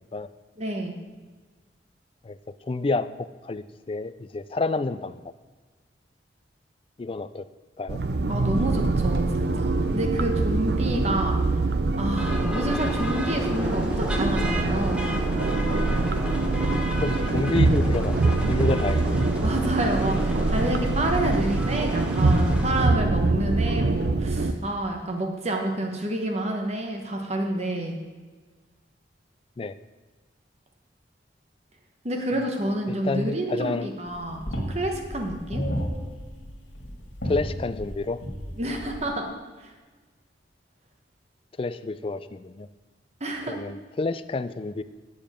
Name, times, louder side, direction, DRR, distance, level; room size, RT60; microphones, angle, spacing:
voice 1, 0.6-1.0 8.3-11.4 12.0-15.1 19.4-28.0 32.0-35.6 38.6-39.3 39.6-39.7 43.2-43.6, right 1 dB, 35° right, 2 dB, 1.3 m, -29 dB
voice 2, 2.7-5.3 7.0-7.5 7.8-8.0 17.0-18.2 18.5-19.1 29.6-29.8 32.9-33.9 37.2-38.2 41.6-42.7 43.5-44.8, left 3 dB, 30° left, 13 dB, 0.3 m, -29 dB
sound 1, 7.9-24.5, right 3 dB, 60° right, 0.5 m, -24 dB
sound 2, 12.2-22.9, equal, 5° right, 1.0 m, -32 dB
sound 3, 34.1-39.0, equal, 75° left, 1.9 m, -33 dB
9.8 x 7.1 x 5.1 m, 1.4 s
head